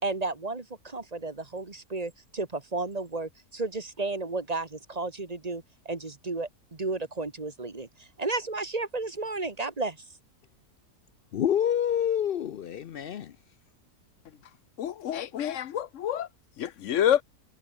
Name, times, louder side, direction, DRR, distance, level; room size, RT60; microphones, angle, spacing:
voice 1, 0.0-10.0, right 3 dB, 25° right, 1.7 m, -33 dB
voice 2, 11.3-13.3, left 9 dB, 90° left, 0.5 m, -27 dB
voice 3, 14.8-16.3 16.6-17.2, left 10 dB, 60° left, 0.9 m, -27 dB
omnidirectional pair, 1.7 m